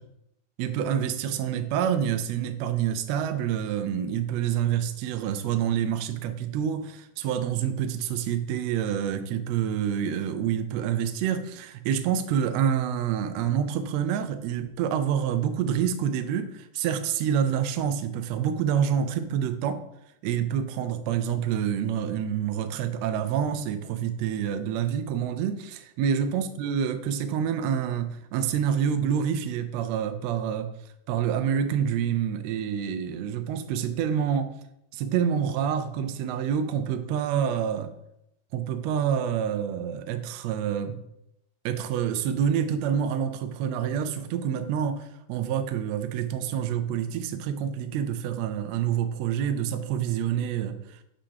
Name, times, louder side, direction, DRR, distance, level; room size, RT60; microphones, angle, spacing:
voice 1, 0.6-19.8 20.2-30.7 31.1-34.6 34.9-37.9 38.5-41.0 41.6-51.0, right 8 dB, 85° right, 9 dB, 1.5 m, -27 dB
5.0 x 3.8 x 5.6 m, 0.81 s
omnidirectional pair, 3.6 m